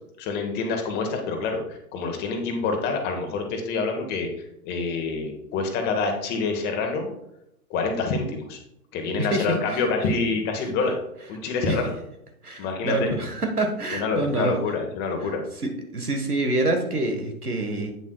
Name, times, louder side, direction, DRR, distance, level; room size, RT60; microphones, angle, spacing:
voice 1, 0.2-4.3 4.6-7.1 7.7-8.6 8.9-11.0 11.3-11.9 12.6-13.1 13.9-15.4, left 4 dB, 20° left, 4 dB, 1.1 m, -27 dB
voice 2, 12.4-14.6 15.6-17.9, right 2 dB, 85° right, 5 dB, 1.4 m, -26 dB
8.4 x 7.1 x 2.3 m, 0.80 s
figure-of-eight pair, 110°, 44 cm